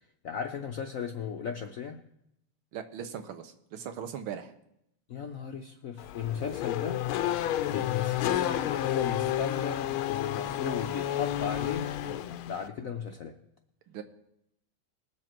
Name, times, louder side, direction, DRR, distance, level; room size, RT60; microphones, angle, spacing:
voice 1, 0.2-2.0 5.1-7.0 7.7-13.4, left 7 dB, 65° left, 4 dB, 0.8 m, -36 dB
voice 2, 2.7-4.5 13.9-14.0, right 8 dB, 85° right, 8 dB, 1.8 m, -39 dB
Race car auto racing / Accelerating revving vroom, 6.0-12.7, left 12 dB, 90° left, 1.5 m, -31 dB
20.5 x 7.3 x 4.5 m, 0.79 s
omnidirectional pair, 2.2 m